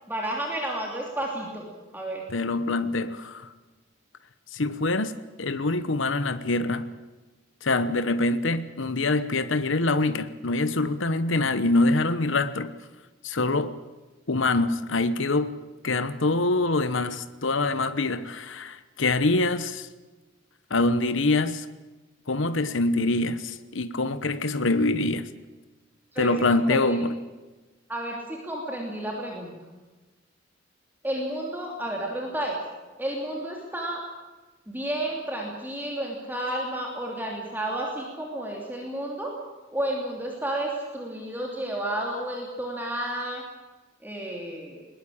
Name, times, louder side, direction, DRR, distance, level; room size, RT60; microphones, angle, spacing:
voice 1, 0.1-2.2 26.1-27.0 27.9-29.5 31.0-32.6 33.0-34.0 34.7-39.3 39.7-43.4 44.0-44.9, right 1 dB, 10° right, 3.0 m, -31 dB
voice 2, 2.3-3.5 4.5-6.9 7.6-12.7 13.2-13.8 14.3-15.5 15.8-19.9 20.7-21.7 22.3-25.3 26.2-27.1, left 2 dB, 65° left, 1.1 m, -25 dB
21.0 x 20.0 x 8.7 m
head